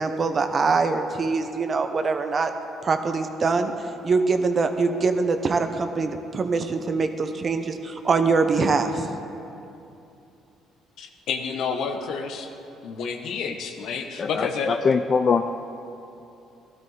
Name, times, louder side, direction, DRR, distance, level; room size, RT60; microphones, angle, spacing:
voice 1, 0.0-2.5 2.8-3.7 4.0-9.1, right 4 dB, 40° right, 7 dB, 1.0 m, -23 dB
voice 2, 11.0-12.5 12.8-14.7, left 5 dB, 70° left, 5 dB, 1.1 m, -29 dB
voice 3, 14.2-15.6, left 5 dB, 45° left, 8 dB, 0.4 m, -23 dB
15.0 x 12.0 x 4.1 m, 2.8 s
supercardioid pair, 70°, 0 cm